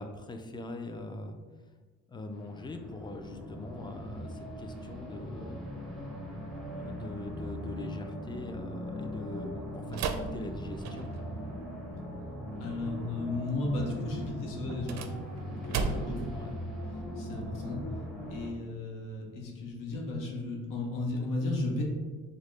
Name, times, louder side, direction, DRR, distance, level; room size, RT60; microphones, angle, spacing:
voice 1, 0.0-1.4 2.1-5.6 6.7-11.1 15.7-16.6, left 2 dB, 15° left, 6 dB, 0.3 m, -42 dB
sound 1, 2.3-18.5, equal, ahead, 0.9 m, -40 dB
sound 2, 9.9-11.3 14.7-16.3, right 4 dB, 60° right, 0.4 m, -35 dB
voice 2, 12.6-15.0 15.4-16.3 17.2-17.8 18.3-21.8, left 2 dB, 80° left, -1 dB, 0.8 m, -34 dB
3.9 x 2.2 x 3.1 m, 1.4 s
cardioid pair, 80°, 32 cm